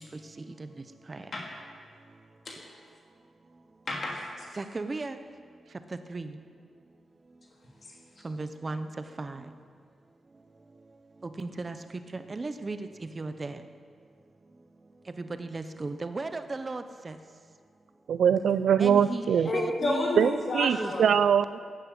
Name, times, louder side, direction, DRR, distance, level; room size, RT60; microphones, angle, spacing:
voice 1, 0.4-0.7 1.1-1.3 4.6-5.2 6.1-6.4 8.2-8.9 9.2-9.4 11.4-11.8 12.1-13.6 15.2-17.2 18.8-19.3 19.5-20.2 20.8-21.3, right 3 dB, 25° right, 9 dB, 0.8 m, -36 dB
voice 2, 3.9-4.6 7.8-8.3 19.4-21.1, left 2 dB, 40° left, -2 dB, 2.6 m, -31 dB
voice 3, 18.1-19.5 20.2-21.6, right 8 dB, 75° right, 14 dB, 0.5 m, -23 dB
14.0 x 11.0 x 8.6 m, 2.1 s
wide cardioid pair, 160°, 0 cm